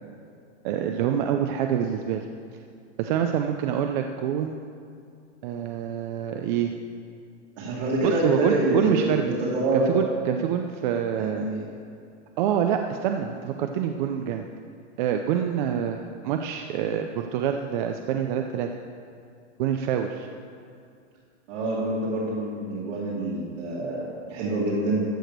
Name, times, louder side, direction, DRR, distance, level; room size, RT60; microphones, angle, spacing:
voice 1, 0.6-2.3 3.0-4.6 5.4-6.7 8.0-9.4 9.7-11.5 12.4-14.4 15.0-18.7 19.6-20.3, right 9 dB, 40° right, 5 dB, 0.5 m, -26 dB
voice 2, 7.6-9.9 11.1-11.6 21.5-25.0, right 2 dB, 80° right, -7 dB, 2.6 m, -26 dB
14.0 x 4.9 x 6.6 m, 2.3 s
supercardioid pair, 160°, 36 cm